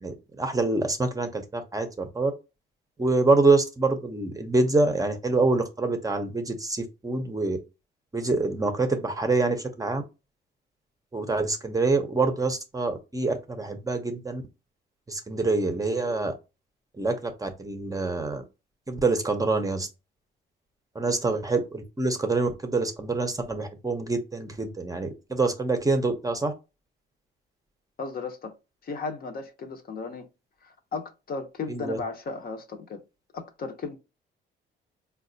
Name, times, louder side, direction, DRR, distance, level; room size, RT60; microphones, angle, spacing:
voice 1, 0.0-2.3 3.0-7.6 8.1-10.0 11.1-14.4 15.1-16.3 17.0-18.4 18.9-19.9 20.9-26.5 31.7-32.0, right 3 dB, 15° right, 0.6 m, -26 dB
voice 2, 28.0-28.5 28.8-30.3 30.6-33.0 33.3-34.0, left 4 dB, 50° left, 0.7 m, -35 dB
4.0 x 2.2 x 2.6 m
cardioid pair, 90°, 20 cm